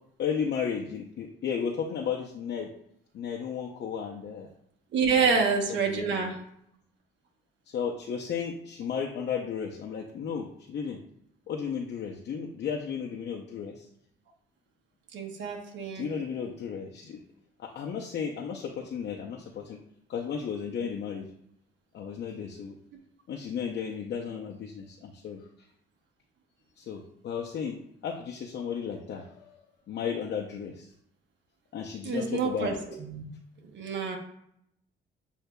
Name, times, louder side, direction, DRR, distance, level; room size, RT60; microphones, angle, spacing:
voice 1, 0.2-2.7 3.1-4.5 5.2-5.4 5.7-6.3 7.7-11.0 11.5-13.9 15.9-17.2 17.6-19.8 20.1-21.3 21.9-22.7 23.3-25.4 26.8-29.6 29.9-30.9 31.7-32.8, left 7 dB, 60° left, -1 dB, 0.6 m, -34 dB
voice 2, 4.9-6.3 15.1-16.1 32.0-32.7 33.0-33.2 33.7-34.2, right 5 dB, 70° right, 2 dB, 1.0 m, -27 dB
8.0 x 2.7 x 2.3 m, 0.73 s
cardioid pair, 90°, 20 cm